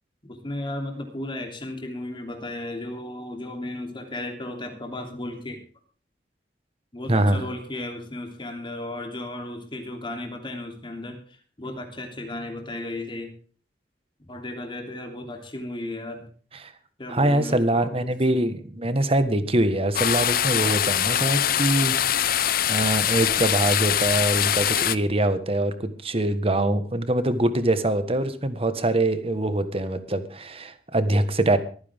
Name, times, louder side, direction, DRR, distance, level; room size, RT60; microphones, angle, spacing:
voice 1, 0.3-5.6 6.9-13.3 14.3-16.3 17.0-18.1, left 1 dB, 30° left, 3 dB, 3.2 m, -35 dB
voice 2, 7.1-7.4 16.6-16.7 17.1-31.6, right 1 dB, 35° right, 11 dB, 1.4 m, -24 dB
sound 1, 19.9-25.0, left 10 dB, 55° left, 0.7 m, -23 dB
23.0 x 9.7 x 3.6 m, 0.41 s
head